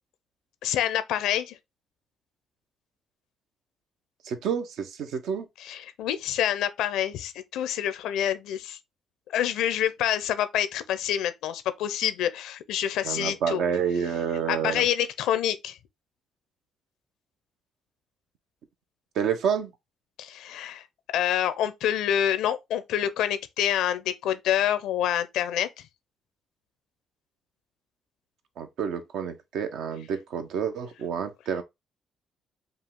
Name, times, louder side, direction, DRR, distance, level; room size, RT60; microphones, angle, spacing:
voice 1, 0.6-1.6 5.6-8.8 9.3-13.6 14.5-15.8 20.2-20.8 21.1-25.7, left 10 dB, 90° left, 0.6 m, -27 dB
voice 2, 4.2-5.5 13.0-14.9 19.1-19.7 28.6-31.6, right 7 dB, 80° right, 0.9 m, -29 dB
5.5 x 2.5 x 3.6 m
cardioid pair, 90°, 0 cm